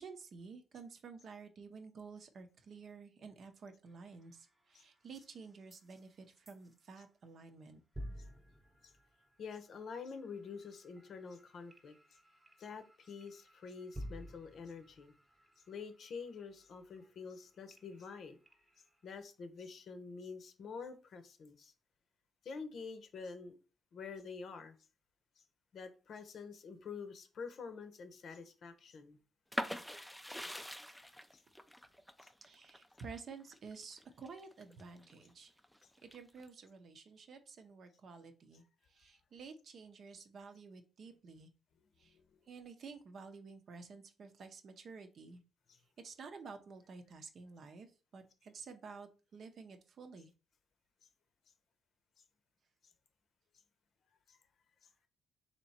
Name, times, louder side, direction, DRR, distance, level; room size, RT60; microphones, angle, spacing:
voice 1, 0.0-7.8 32.4-35.5 36.0-41.5 42.0-42.2 42.5-45.4 46.0-50.3, right 5 dB, 55° right, 0.7 m, -52 dB
sound 1, 3.8-7.1 7.4-7.7 7.9-19.1, equal, 15° right, 0.9 m, -54 dB
voice 2, 9.4-11.9 12.6-15.1 15.7-18.4 19.0-21.7 22.4-23.5 23.9-24.8 25.7-29.2 29.7-29.8 30.6-30.7 31.3-31.4 32.2-32.3 42.1-42.4 45.7-45.8 54.3-54.4, left 5 dB, 60° left, 0.7 m, -47 dB
sound 2, 29.5-35.1 35.6-36.4, equal, ahead, 0.4 m, -43 dB
3.3 x 2.9 x 4.2 m
cardioid pair, 90°, 0 cm